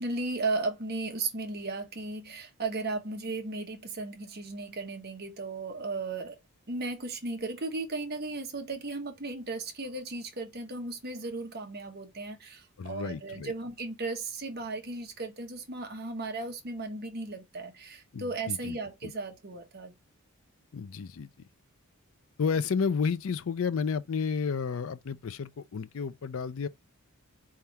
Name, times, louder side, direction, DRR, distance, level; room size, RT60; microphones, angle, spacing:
voice 1, 0.0-6.4 6.7-19.9, right 3 dB, 45° right, 1.2 m, -35 dB
voice 2, 12.8-13.5 18.1-18.8 19.0-19.1 20.7-21.3 22.4-26.7, left 5 dB, 65° left, 0.4 m, -31 dB
4.4 x 3.5 x 2.8 m
head